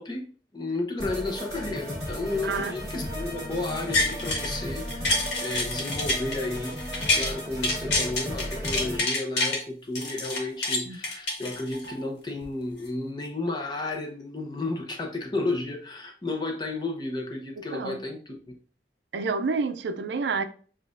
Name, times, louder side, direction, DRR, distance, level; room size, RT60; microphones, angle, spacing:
voice 1, 0.0-5.1 5.4-6.8 7.2-18.5, left 2 dB, 25° left, 0.7 m, -32 dB
sound 1, 1.0-9.0, equal, 15° right, 1.6 m, -35 dB
rock in a soda can, 3.7-4.5 4.9-7.3 7.6-9.6 9.9-11.9 12.4-12.5, left 2 dB, 90° left, 1.3 m, -27 dB
voice 2, 17.6-18.0 19.1-20.4, right 4 dB, 85° right, 0.4 m, -29 dB
6.9 x 2.4 x 2.5 m
head